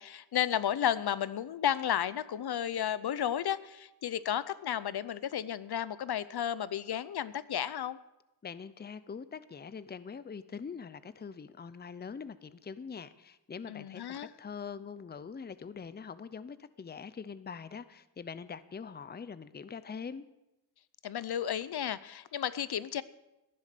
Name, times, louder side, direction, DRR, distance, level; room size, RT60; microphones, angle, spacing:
voice 1, 0.0-8.0 13.7-14.3 21.0-23.0, left 10 dB, 75° left, 17 dB, 0.6 m, -33 dB
voice 2, 8.4-20.2, left 6 dB, 25° left, 15 dB, 0.5 m, -43 dB
15.0 x 10.5 x 6.7 m, 0.95 s
wide cardioid pair, 140°, 39 cm